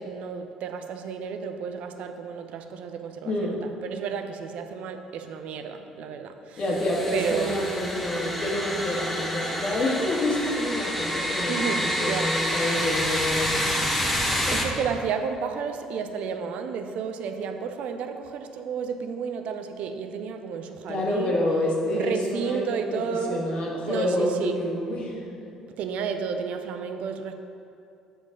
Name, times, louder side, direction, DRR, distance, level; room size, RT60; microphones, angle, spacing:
voice 1, 0.0-6.6 7.1-7.7 11.5-12.3 14.5-21.4 21.9-23.5 23.8-24.6 25.8-27.3, right 6 dB, 55° right, 7 dB, 0.6 m, -32 dB
voice 2, 3.3-3.7 6.6-13.8 14.1-14.6 20.9-25.5, left 1 dB, 45° left, -2 dB, 1.8 m, -28 dB
sound 1, 6.6-14.6, equal, 5° left, 1.6 m, -28 dB
8.7 x 5.1 x 5.1 m, 2.6 s
figure-of-eight pair, 50°, 3 cm